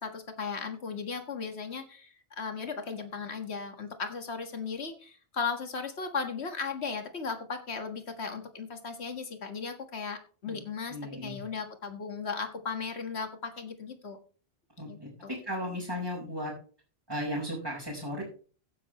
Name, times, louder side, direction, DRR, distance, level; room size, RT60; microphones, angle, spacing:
voice 1, 0.0-14.2 14.9-15.3, left 5 dB, 80° left, 6 dB, 2.0 m, -36 dB
voice 2, 10.9-11.4 14.8-16.5 17.1-18.2, equal, 20° right, -6 dB, 4.9 m, -35 dB
15.5 x 10.5 x 3.1 m, 0.40 s
omnidirectional pair, 1.1 m